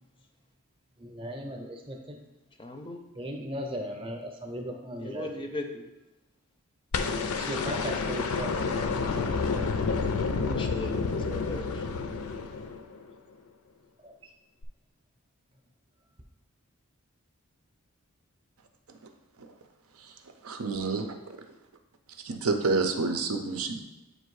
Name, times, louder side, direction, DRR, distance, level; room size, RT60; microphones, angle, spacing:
voice 1, 1.0-2.2 3.2-5.3 7.3-8.6 14.0-14.3, equal, 25° right, 3 dB, 0.6 m, -37 dB
voice 2, 2.6-3.0 5.0-5.8 10.2-11.9, left 2 dB, 25° left, 5 dB, 0.5 m, -38 dB
sound 1, 6.9-13.1 14.6-14.7, left 4 dB, 85° left, 0.5 m, -29 dB
voice 3, 20.4-21.1 22.2-23.8, right 3 dB, 85° right, 6 dB, 0.6 m, -28 dB
7.7 x 2.7 x 4.6 m, 1.0 s
head